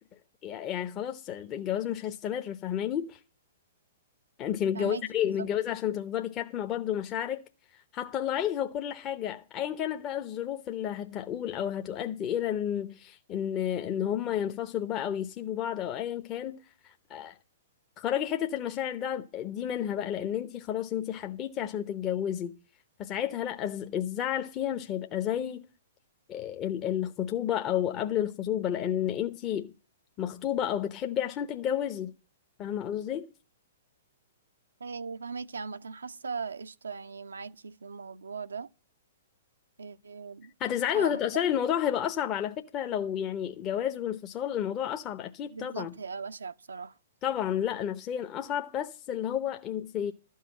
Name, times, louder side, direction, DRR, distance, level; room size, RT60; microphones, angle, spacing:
voice 1, 0.4-3.2 4.4-7.4 7.9-17.4 18.0-22.5 23.0-25.7 26.3-29.7 30.2-32.1 32.6-33.3 40.6-45.9 47.2-50.1, left 10 dB, 30° left, 0.7 m, -31 dB
voice 2, 34.8-38.7 39.8-40.5 40.9-41.2 45.5-46.9, right 5 dB, 75° right, 0.6 m, -39 dB
12.5 x 5.6 x 8.5 m
figure-of-eight pair, 110°, 0 cm